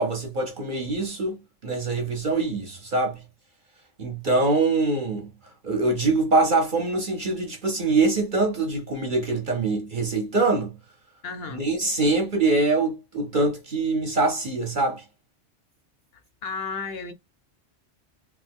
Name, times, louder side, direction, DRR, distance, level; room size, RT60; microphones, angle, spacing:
voice 1, 0.0-3.2 4.0-5.3 5.6-10.7 11.5-15.0, right 3 dB, 45° right, 0.8 m, -24 dB
voice 2, 11.2-11.7 16.4-17.1, left 4 dB, 65° left, 0.7 m, -33 dB
3.2 x 2.2 x 3.5 m
omnidirectional pair, 1.2 m